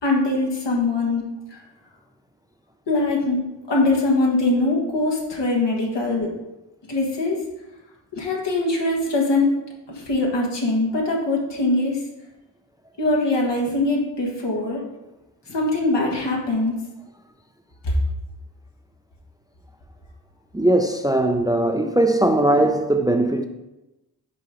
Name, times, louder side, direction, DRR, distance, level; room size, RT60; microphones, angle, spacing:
voice 1, 0.0-1.2 1.5-1.6 2.9-6.3 6.9-7.4 8.1-9.5 9.9-12.0 13.0-14.8 15.5-16.7 17.8-17.9, left 2 dB, 75° left, 1.5 m, -22 dB
voice 2, 20.5-23.4, right 1 dB, 10° right, 0.5 m, -19 dB
5.9 x 4.7 x 3.6 m
cardioid pair, 40°, 42 cm